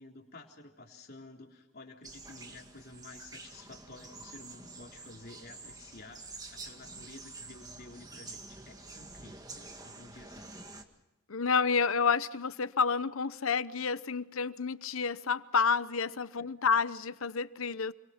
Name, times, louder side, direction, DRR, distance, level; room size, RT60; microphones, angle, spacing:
voice 1, 0.0-10.5 16.4-16.7, left 2 dB, 50° left, 3.8 m, -52 dB
sound 1, 2.0-10.8, right 3 dB, 20° right, 1.9 m, -48 dB
voice 2, 11.3-17.9, left 5 dB, 80° left, 0.9 m, -29 dB
29.0 x 24.0 x 5.8 m
head